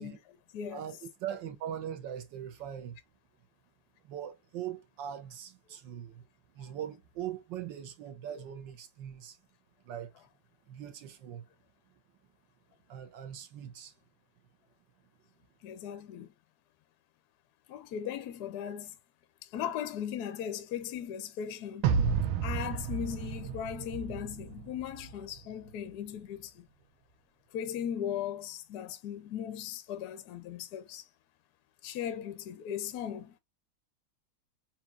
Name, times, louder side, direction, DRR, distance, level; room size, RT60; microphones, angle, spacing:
voice 1, 0.0-0.9 15.6-16.3 17.7-19.0 19.4-22.0 22.4-26.7 27.5-31.1 31.8-33.4, left 9 dB, 75° left, 0.9 m, -38 dB
voice 2, 0.7-3.0 4.0-6.2 6.6-9.4 9.8-10.1 10.7-11.4 12.9-13.9, right 10 dB, 65° right, 1.3 m, -41 dB
sound 1, 21.8-25.1, right 6 dB, 90° right, 1.5 m, -31 dB
6.0 x 2.8 x 2.4 m
omnidirectional pair, 2.4 m